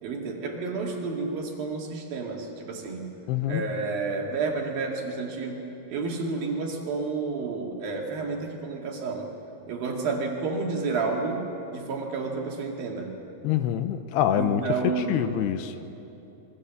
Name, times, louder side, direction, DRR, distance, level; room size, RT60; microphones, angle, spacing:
voice 1, 0.0-3.2 3.5-5.6 5.9-9.3 9.7-13.1 14.4-15.2, right 4 dB, 60° right, 1 dB, 3.9 m, -30 dB
voice 2, 3.3-3.7 13.4-15.7, left 10 dB, 80° left, 9 dB, 2.9 m, -26 dB
26.0 x 22.5 x 7.3 m, 2.9 s
omnidirectional pair, 4.8 m